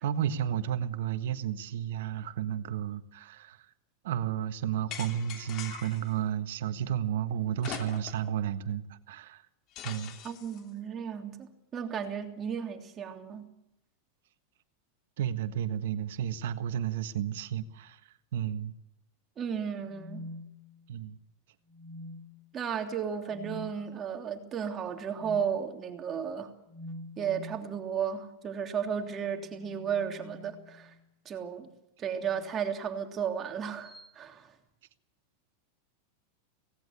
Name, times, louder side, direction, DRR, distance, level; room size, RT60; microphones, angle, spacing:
voice 1, 0.0-3.6 4.0-9.4 9.8-10.2 15.2-18.0 18.3-18.7 20.9-21.2, right 10 dB, 70° right, 12 dB, 1.5 m, -32 dB
sound 1, 4.9-6.1 7.6-8.3 8.7-8.8 9.8-10.6, left 9 dB, 45° left, 2.9 m, -42 dB
voice 2, 10.2-13.5 19.4-20.3 22.5-26.5 27.2-30.9 31.2-31.7 32.0-34.5, right 7 dB, 30° right, 4 dB, 3.1 m, -34 dB
sound 2, 19.8-21.1 21.7-22.5 23.3-23.8 25.2-25.5 26.7-27.7 29.2-31.0 32.1-32.6 33.8-34.1, left 1 dB, 10° left, 2.1 m, -46 dB
17.5 x 17.0 x 9.9 m, 0.84 s
hypercardioid pair, 105°, 0 cm